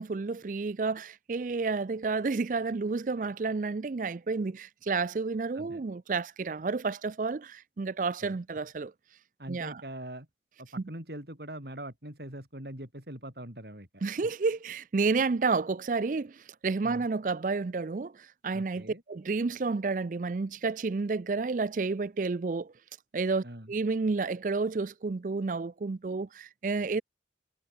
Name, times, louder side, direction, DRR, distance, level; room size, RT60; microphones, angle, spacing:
voice 1, 0.0-8.9 9.5-9.8 14.0-22.7 23.1-27.0, right 4 dB, 45° right, 0.4 m, -30 dB
voice 2, 9.4-10.3 10.6-14.0 16.8-17.1 18.5-19.0 23.4-23.7, right 1 dB, 60° right, 6.3 m, -42 dB
head